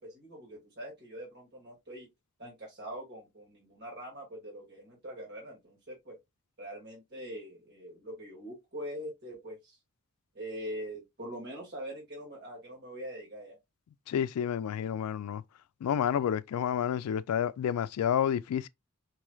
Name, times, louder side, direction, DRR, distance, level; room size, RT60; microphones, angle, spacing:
voice 1, 0.0-2.1 2.4-6.2 6.6-9.8 10.3-13.6, equal, 50° right, 1.9 m, -43 dB
voice 2, 14.1-15.4 15.8-18.7, left 9 dB, 85° left, 0.3 m, -30 dB
4.6 x 3.1 x 2.2 m
head